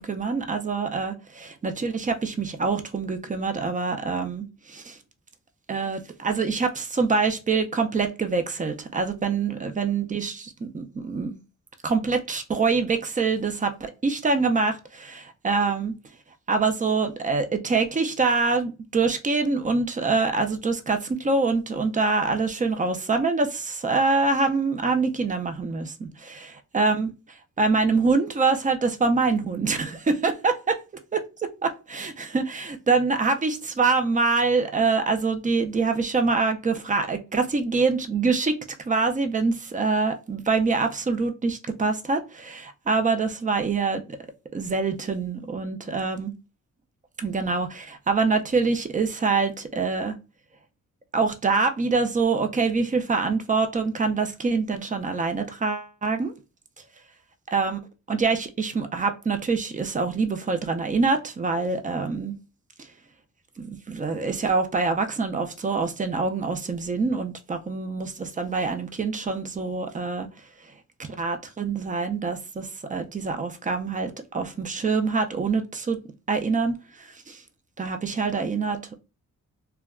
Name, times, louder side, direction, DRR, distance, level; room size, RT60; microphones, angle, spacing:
voice 1, 0.0-5.0 5.7-11.4 11.8-15.9 16.5-27.1 27.6-30.8 31.1-38.6 38.9-44.2 44.5-46.3 47.2-50.2 51.1-56.3 57.5-57.8 58.1-62.4 63.6-70.3 71.0-76.0 76.3-77.4 77.8-79.0, right 4 dB, 25° right, 0.4 m, -25 dB
2.2 x 2.1 x 3.4 m
cardioid pair, 95°, 32 cm